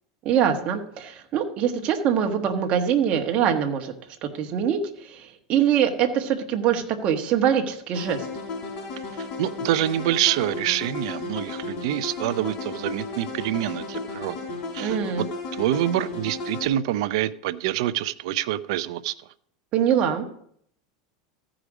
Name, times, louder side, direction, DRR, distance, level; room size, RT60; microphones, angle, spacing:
voice 1, 0.2-3.9 4.2-8.2 14.8-15.3 19.7-20.4, right 8 dB, 45° right, 5 dB, 1.3 m, -23 dB
sound 1, 7.9-16.7, left 3 dB, 50° left, 3.3 m, -34 dB
voice 2, 9.2-14.4 14.7-15.2 15.5-19.1, right 13 dB, 70° right, 16 dB, 0.5 m, -26 dB
14.5 x 5.0 x 4.9 m, 0.67 s
supercardioid pair, 125°, 3 cm